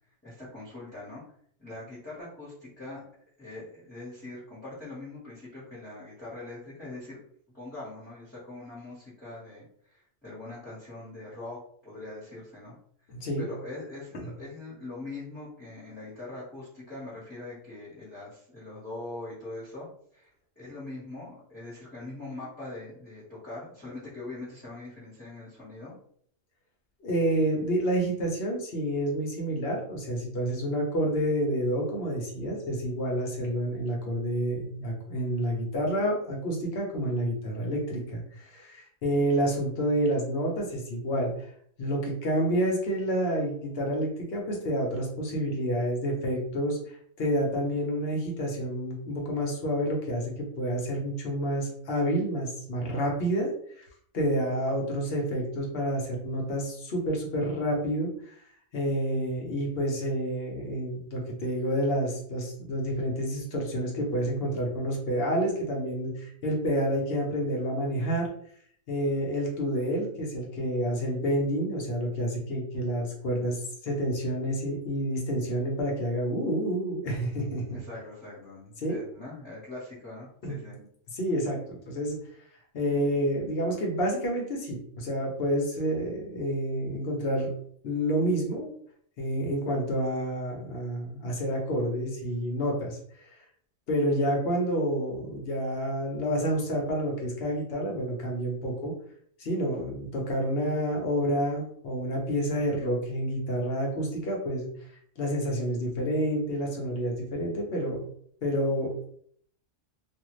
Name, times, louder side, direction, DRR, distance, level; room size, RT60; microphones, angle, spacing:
voice 1, 0.2-1.2 1.6-3.0 3.4-7.2 7.5-9.6 9.9-11.6 11.8-12.7 13.4-19.9 20.1-20.3 20.5-25.9 77.7-80.8, left 2 dB, 10° left, -12 dB, 1.2 m, -42 dB
voice 2, 13.1-13.4 27.0-41.3 41.8-53.5 53.8-53.9 54.1-58.3 58.7-68.3 68.9-77.8 78.8-79.0 80.4-80.5 81.1-82.2 82.7-87.5 87.8-88.7 89.2-93.0 93.9-98.9 99.4-104.7 105.2-108.0 108.4-109.1, equal, 55° left, 0 dB, 1.0 m, -29 dB
2.5 x 2.5 x 3.1 m, 0.64 s
omnidirectional pair, 1.3 m